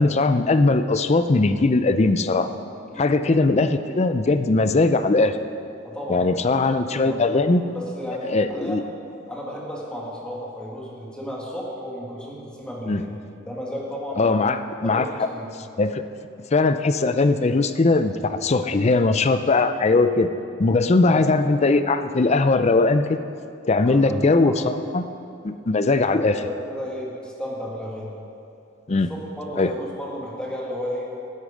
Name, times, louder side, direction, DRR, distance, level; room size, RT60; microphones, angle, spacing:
voice 1, 0.0-2.5 3.0-5.4 6.1-7.6 8.2-8.8 12.9-13.0 14.2-15.0 15.8-16.0 16.5-20.3 20.6-23.2 23.7-25.0 25.4-26.4 28.9-29.1 29.6-29.7, left 3 dB, 35° left, 10 dB, 0.5 m, -20 dB
voice 2, 5.8-7.2 7.7-8.9 9.3-13.1 13.4-14.5 14.8-15.5 21.1-21.2 23.8-24.6 26.1-28.1 28.9-31.1, equal, 5° left, -5 dB, 2.0 m, -33 dB
13.0 x 9.9 x 5.0 m, 2.8 s
head